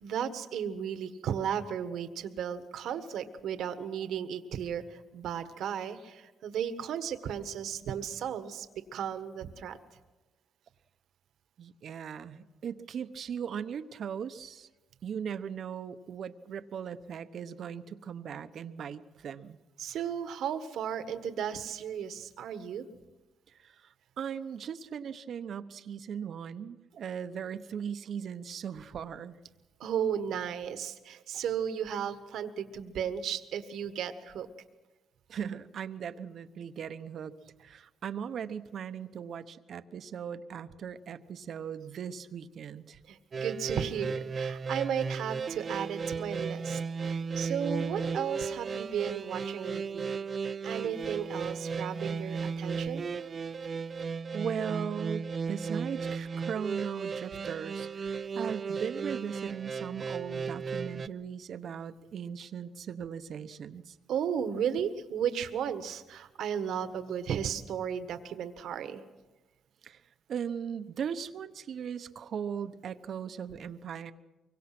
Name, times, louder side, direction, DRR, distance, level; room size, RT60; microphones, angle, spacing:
voice 1, 0.0-8.7 8.9-9.8 19.8-22.8 29.8-34.5 43.1-50.1 50.6-53.0 64.1-69.0, right 8 dB, 75° right, 10 dB, 1.6 m, -34 dB
voice 2, 11.6-14.7 15.0-19.6 23.5-29.4 35.3-37.3 37.6-43.0 54.3-64.0 69.8-70.0 70.3-74.1, right 7 dB, 60° right, 11 dB, 1.0 m, -38 dB
sound 1, 43.3-61.1, right 5 dB, 40° right, 0.7 m, -35 dB
24.0 x 23.5 x 6.1 m, 1.2 s
cardioid pair, 90°, 0 cm